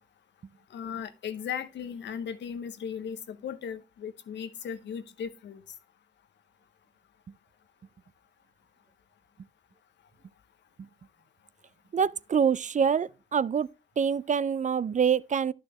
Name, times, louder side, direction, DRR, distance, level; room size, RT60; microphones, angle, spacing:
voice 1, 0.7-5.6, left 7 dB, 75° left, 0.8 m, -37 dB
voice 2, 11.9-13.7 14.0-15.5, right 7 dB, 45° right, 0.4 m, -25 dB
11.0 x 6.5 x 3.0 m
supercardioid pair, 50°, 18 cm